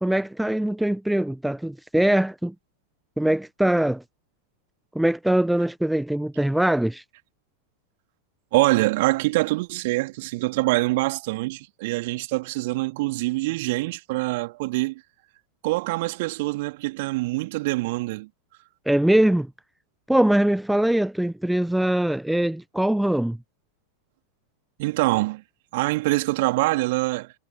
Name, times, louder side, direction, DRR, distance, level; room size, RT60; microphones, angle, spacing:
voice 1, 0.0-2.5 3.2-4.0 4.9-7.0 18.9-19.5 20.1-23.4, right 1 dB, 5° right, 1.1 m, -22 dB
voice 2, 8.5-15.0 15.6-18.3 24.8-25.4 25.7-27.3, right 21 dB, 50° right, 3.1 m, -24 dB
figure-of-eight pair, 90°, 0 cm